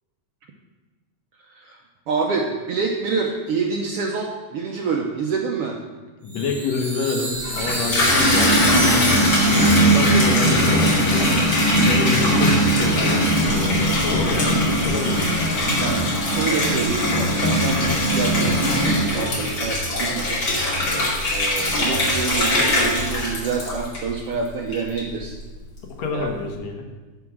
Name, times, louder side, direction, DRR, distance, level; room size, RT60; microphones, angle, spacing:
voice 1, 1.4-1.8 2.1-5.8 15.8-20.4 21.3-25.4 26.1-26.3, right 5 dB, 70° right, 1 dB, 1.4 m, -27 dB
voice 2, 6.2-9.4 9.7-11.3 11.7-15.3 19.3-19.6 26.0-26.9, left 4 dB, 65° left, 2 dB, 2.3 m, -27 dB
Chime, 6.3-11.8, right 1 dB, 10° right, 2.0 m, -31 dB
Water tap faucet / Bathtub (filling or washing), 7.4-24.3 24.7-25.3, equal, 40° left, 3.1 m, -20 dB
11.0 x 4.9 x 7.3 m, 1.3 s
omnidirectional pair, 3.4 m